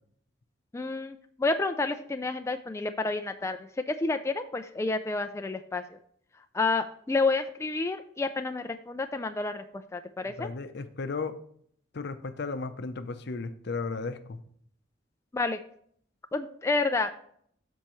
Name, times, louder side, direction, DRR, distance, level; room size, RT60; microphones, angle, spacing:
voice 1, 0.7-6.0 6.5-10.5 15.3-15.6 16.3-17.3, left 3 dB, 15° left, 7 dB, 0.3 m, -30 dB
voice 2, 10.4-11.4 11.9-14.4, left 4 dB, 60° left, 10 dB, 0.6 m, -34 dB
13.0 x 4.6 x 3.1 m, 0.63 s
head